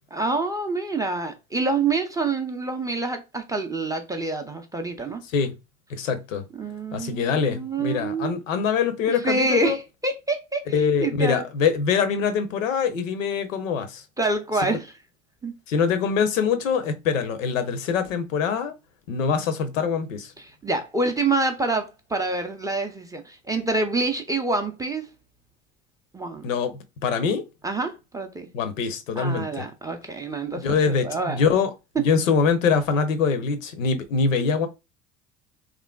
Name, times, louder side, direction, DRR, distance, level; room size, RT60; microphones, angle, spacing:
voice 1, 0.1-5.2 6.6-8.3 9.1-10.7 11.0-11.4 14.2-14.9 15.4-15.5 20.4-25.0 26.1-26.5 27.6-28.5 29.2-31.4, right 3 dB, 10° right, 0.4 m, -27 dB
voice 2, 5.9-6.4 6.9-9.8 10.7-14.0 15.7-18.7 19.1-20.3 26.4-27.4 28.5-29.6 30.6-31.7 32.0-34.7, left 6 dB, 85° left, 0.6 m, -24 dB
3.0 x 2.5 x 2.2 m
hypercardioid pair, 75°, 38 cm